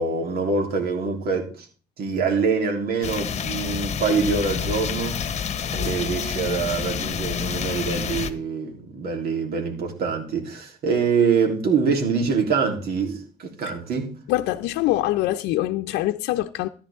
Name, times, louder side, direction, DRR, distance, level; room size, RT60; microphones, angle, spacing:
voice 1, 0.0-1.7 2.0-5.2 5.7-14.1, right 5 dB, 65° right, 3.5 m, -25 dB
sound 1, 3.0-8.3, left 7 dB, 40° left, 1.2 m, -28 dB
voice 2, 14.3-16.7, left 15 dB, 90° left, 0.6 m, -24 dB
14.0 x 10.0 x 3.7 m
cardioid pair, 110°, 17 cm